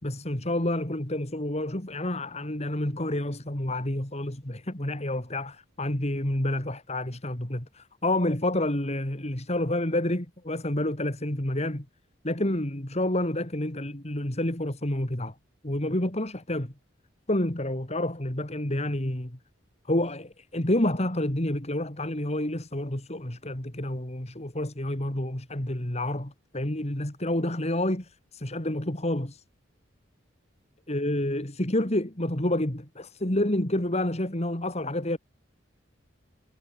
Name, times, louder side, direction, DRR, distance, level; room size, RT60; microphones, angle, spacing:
voice 1, 0.0-11.9 12.2-15.3 15.6-16.7 17.3-19.4 19.9-29.4 30.9-35.2, left 1 dB, 35° left, 2.8 m, -29 dB
head